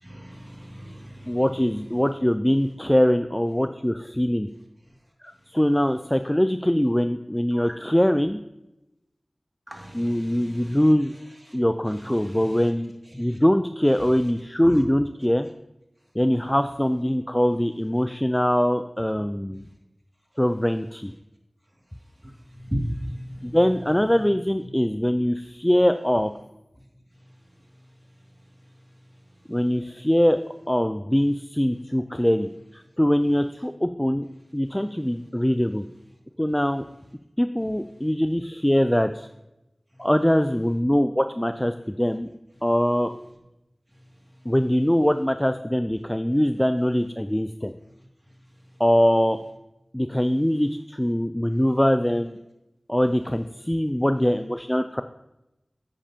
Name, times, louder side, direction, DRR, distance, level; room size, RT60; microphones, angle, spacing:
voice 1, 0.1-1.3 7.5-8.0 9.7-10.7 12.2-12.6 14.6-14.8 22.7-23.6, equal, 15° right, 0 dB, 2.2 m, -35 dB
voice 2, 1.3-4.5 5.2-8.4 9.9-11.1 11.5-12.9 13.2-15.5 16.2-19.6 20.4-21.1 23.4-26.3 29.5-30.4 30.7-34.3 34.5-35.9 36.4-36.8 37.4-39.3 40.0-42.3 42.6-43.1 44.5-47.7 48.8-49.4 49.9-52.4 52.9-55.0, equal, 10° left, 9 dB, 0.4 m, -22 dB
10.0 x 8.7 x 2.8 m, 0.91 s
wide cardioid pair, 55°, 0 cm